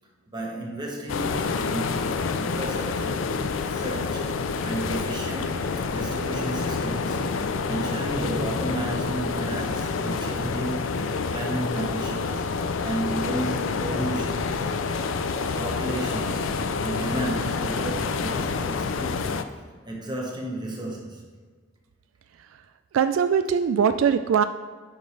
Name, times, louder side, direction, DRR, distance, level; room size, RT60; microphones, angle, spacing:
voice 1, 0.3-4.3 4.6-7.2 7.7-12.5 12.8-14.6 15.5-16.5 16.8-19.3 19.9-21.2, right 1 dB, 20° right, -1 dB, 1.3 m, -33 dB
sound 1, 1.1-19.4, left 4 dB, 75° left, 0.4 m, -28 dB
voice 2, 22.9-24.4, right 7 dB, 85° right, 11 dB, 0.3 m, -21 dB
9.1 x 5.5 x 3.3 m, 1.5 s
head